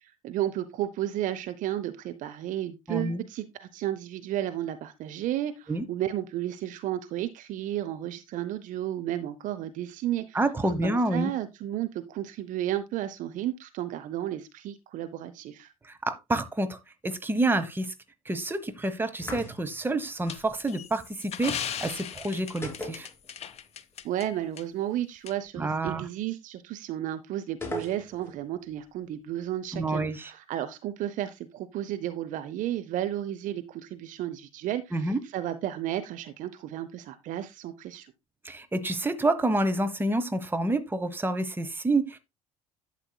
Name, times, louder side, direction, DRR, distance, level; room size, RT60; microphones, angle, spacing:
voice 1, 0.0-10.4 10.8-15.7 24.0-38.1, right 12 dB, 50° right, 0.8 m, -33 dB
voice 2, 2.9-3.2 5.7-5.8 10.3-11.3 15.8-16.8 17.0-17.9 18.2-23.1 25.6-26.1 29.7-30.3 34.9-35.2 38.4-42.2, right 2 dB, 10° right, 1.2 m, -28 dB
sound 1, 19.2-19.9 22.6-23.7 23.9-24.0 27.6-28.4, left 1 dB, 15° left, 3.1 m, -38 dB
sound 2, 20.3-24.3 24.6-24.7 25.3-25.4, left 8 dB, 40° left, 0.8 m, -37 dB
11.5 x 7.5 x 2.3 m
figure-of-eight pair, 60°, 17 cm